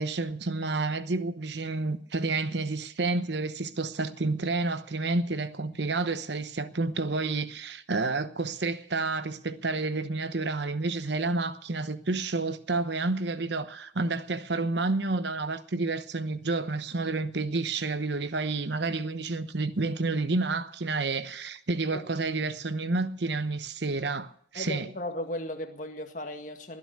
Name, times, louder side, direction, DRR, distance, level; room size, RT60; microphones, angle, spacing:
voice 1, 0.0-24.9, right 3 dB, 70° right, 1.0 m, -30 dB
voice 2, 24.5-26.8, left 1 dB, 45° left, 1.9 m, -36 dB
20.5 x 10.0 x 6.6 m
head